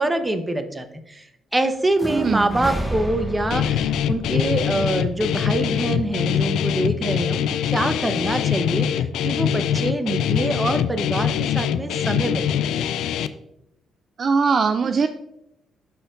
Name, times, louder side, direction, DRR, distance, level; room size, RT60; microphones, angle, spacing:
voice 1, 0.0-12.9, right 2 dB, 20° right, 8 dB, 0.9 m, -25 dB
sound 1, 2.0-5.9, equal, ahead, 1.5 m, -32 dB
voice 2, 2.1-2.4 14.2-15.1, right 5 dB, 50° right, 9 dB, 0.3 m, -20 dB
Guitar, 3.5-13.3, left 9 dB, 80° left, 0.3 m, -23 dB
13.0 x 4.3 x 2.5 m, 0.84 s
supercardioid pair, 60°, 0 cm